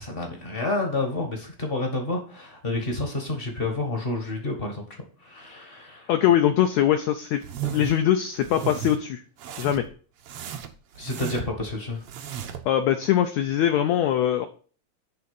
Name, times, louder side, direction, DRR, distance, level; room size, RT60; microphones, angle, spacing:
voice 1, 0.0-4.8 5.2-6.1 11.0-12.0, left 2 dB, 45° left, 3 dB, 0.7 m, -29 dB
voice 2, 6.1-9.2 9.6-9.9 12.7-14.5, left 11 dB, 85° left, 7 dB, 1.5 m, -22 dB
sound 1, 7.4-8.0 8.4-9.0 9.4-9.9 10.3-11.6 12.0-12.7, right 9 dB, 90° right, 1.2 m, -35 dB
10.5 x 3.8 x 7.0 m, 0.40 s
omnidirectional pair, 4.0 m